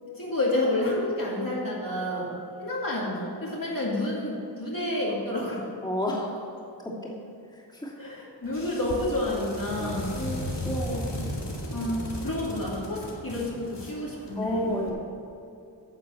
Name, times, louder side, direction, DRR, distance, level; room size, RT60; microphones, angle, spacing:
voice 1, 0.2-2.3 2.6-5.6 8.0-10.1 11.7-14.7, left 1 dB, 50° left, -5 dB, 2.4 m, -29 dB
voice 2, 5.8-7.1 7.5-7.9 8.8-9.0 9.8-11.1 14.4-15.1, equal, 10° left, -6 dB, 2.7 m, -33 dB
sound 1, 8.4-14.9, left 1 dB, 75° left, 2.0 m, -36 dB
10.0 x 6.6 x 7.0 m, 2.7 s
wide cardioid pair, 45°, 43 cm